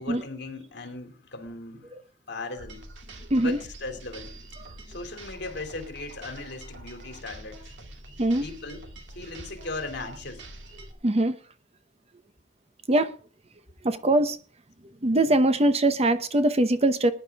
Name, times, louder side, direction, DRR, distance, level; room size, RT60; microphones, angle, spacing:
voice 1, 0.0-1.9 2.3-2.9 3.4-4.3 4.9-7.7 8.4-8.9 9.1-10.4, left 2 dB, 65° left, 2.7 m, -37 dB
sound 1, 2.6-10.9, right 2 dB, 70° right, 2.4 m, -45 dB
voice 2, 11.0-11.4 12.9-13.1 13.8-14.4 15.0-17.1, right 1 dB, 35° right, 0.9 m, -22 dB
20.0 x 10.5 x 3.6 m
head